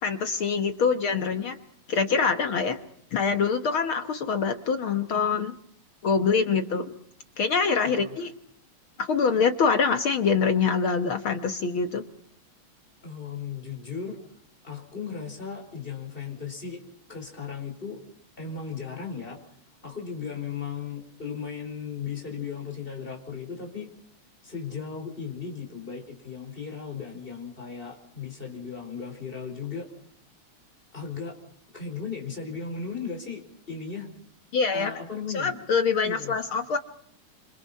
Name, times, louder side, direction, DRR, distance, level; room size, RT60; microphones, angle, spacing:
voice 1, 0.0-1.6 1.9-2.8 3.1-5.5 6.0-6.9 7.4-8.3 9.0-12.0 34.5-34.9 35.3-36.8, left 5 dB, 55° left, 8 dB, 1.7 m, -24 dB
voice 2, 7.8-8.2 13.0-14.2 14.6-16.8 17.1-18.0 18.4-19.4 19.8-23.9 24.4-29.9 30.9-31.4 31.7-34.1 34.7-35.6 36.0-36.4, left 6 dB, 15° left, 1 dB, 4.9 m, -36 dB
27.0 x 26.5 x 5.7 m, 0.64 s
omnidirectional pair, 3.4 m